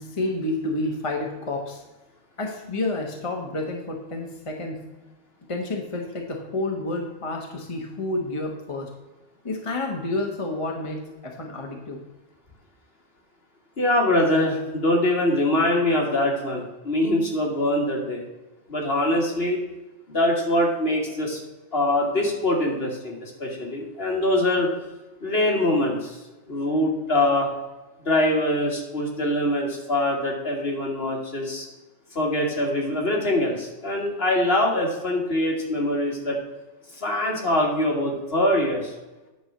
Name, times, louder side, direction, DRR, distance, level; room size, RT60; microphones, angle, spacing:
voice 1, 0.0-1.8 2.4-4.8 5.5-8.9 9.4-12.0, left 2 dB, 30° left, 1 dB, 1.2 m, -29 dB
voice 2, 13.8-18.2 18.7-19.6 20.1-21.4 21.7-24.7 25.2-26.2 26.5-27.5 28.1-31.7 32.2-36.4 37.0-38.9, left 1 dB, 55° left, -1 dB, 2.3 m, -23 dB
9.6 x 4.6 x 6.6 m, 1.1 s
omnidirectional pair, 1.2 m